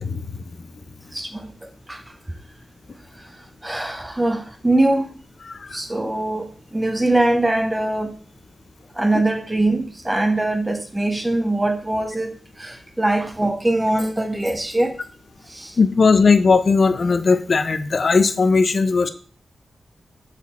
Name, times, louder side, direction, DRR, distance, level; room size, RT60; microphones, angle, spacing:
voice 1, 0.0-0.4 5.5-5.8 15.8-19.1, left 4 dB, 50° left, 0.6 m, -18 dB
voice 2, 1.1-1.5 1.9-2.0 3.6-5.1 5.7-8.1 9.0-12.3 12.6-14.9 15.5-15.8, right 2 dB, 15° right, 0.9 m, -22 dB
6.3 x 4.1 x 4.2 m
wide cardioid pair, 100°, 0 cm